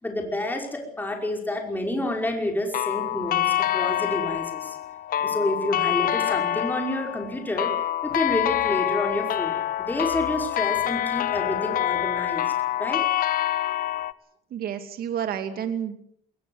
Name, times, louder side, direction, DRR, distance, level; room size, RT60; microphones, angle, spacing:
voice 1, 0.0-4.8 5.2-7.7 8.0-12.5 12.8-13.0, left 1 dB, 10° left, 2 dB, 5.4 m, -29 dB
sound 1, 2.7-14.1, left 12 dB, 55° left, 1.0 m, -26 dB
voice 2, 14.5-16.0, right 9 dB, 60° right, 7 dB, 2.7 m, -30 dB
21.5 x 20.5 x 8.1 m, 0.72 s
cardioid pair, 110°, 17 cm